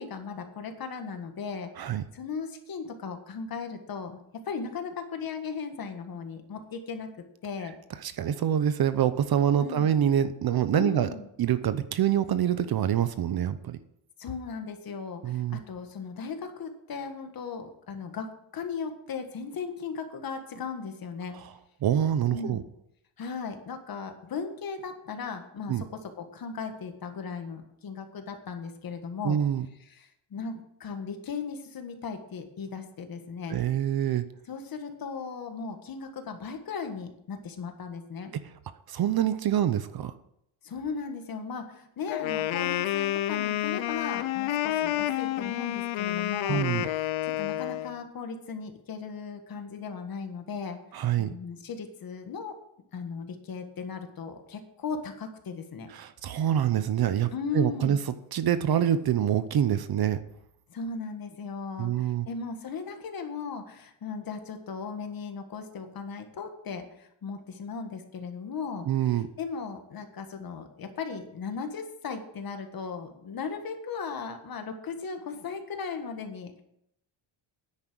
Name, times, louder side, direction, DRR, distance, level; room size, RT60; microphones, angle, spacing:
voice 1, 0.0-1.7 2.1-7.1 7.4-7.7 9.6-9.9 10.7-11.3 14.2-21.3 22.3-22.6 23.2-29.4 29.9-33.6 34.5-38.3 40.6-50.8 51.2-52.5 52.9-55.9 57.3-58.0 60.7-76.6, left 5 dB, 45° left, 6 dB, 1.7 m, -37 dB
voice 2, 8.0-11.1 11.4-13.8 15.2-15.6 21.8-22.6 25.7-25.8 29.2-29.7 33.5-34.2 38.3-38.4 38.9-40.1 46.5-46.9 50.9-51.3 55.9-58.0 58.3-60.2 61.8-62.3 68.9-69.3, right 10 dB, 50° right, 13 dB, 0.8 m, -26 dB
Wind instrument woodwind instrument, 42.1-48.0, left 13 dB, 75° left, 0.8 m, -29 dB
10.0 x 8.7 x 6.2 m, 0.76 s
cardioid pair, 150°, 48 cm